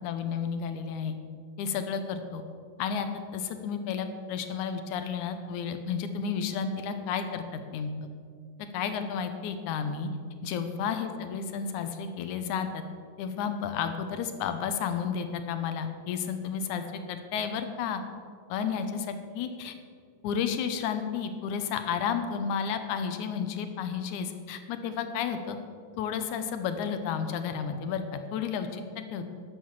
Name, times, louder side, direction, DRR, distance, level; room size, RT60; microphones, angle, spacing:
voice 1, 0.0-1.2 1.6-2.4 2.8-3.1 3.3-7.9 8.7-10.1 10.4-12.8 13.2-18.0 18.5-19.7 20.2-25.6 26.0-29.4, left 7 dB, 80° left, 8 dB, 2.2 m, -32 dB
11.5 x 7.5 x 7.4 m, 2.1 s
omnidirectional pair, 3.6 m